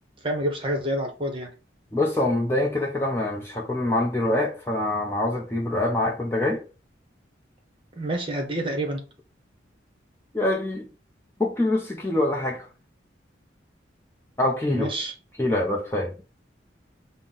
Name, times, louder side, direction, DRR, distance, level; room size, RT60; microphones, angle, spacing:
voice 1, 0.2-1.5 8.0-9.0 14.7-15.1, right 1 dB, 25° right, 0.9 m, -28 dB
voice 2, 1.9-6.6 10.3-10.9 11.4-12.7 14.4-14.9 15.4-16.1, left 1 dB, 15° left, 0.6 m, -25 dB
5.7 x 2.1 x 3.8 m
head